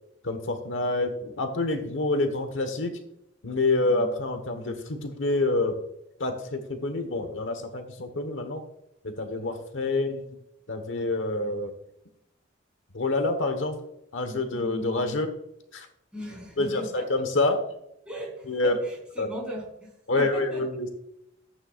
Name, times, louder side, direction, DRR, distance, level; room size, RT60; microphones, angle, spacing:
voice 1, 0.2-2.9 3.4-5.8 6.2-8.6 9.0-10.3 10.7-11.7 12.9-13.8 14.1-15.3 15.7-15.9 16.6-17.7 18.4-18.8 19.2-19.3 20.1-20.9, left 2 dB, 80° left, 1.3 m, -27 dB
voice 2, 16.1-17.1 18.1-19.9 20.1-20.7, right 1 dB, 5° right, 4.0 m, -37 dB
14.5 x 9.0 x 2.4 m
head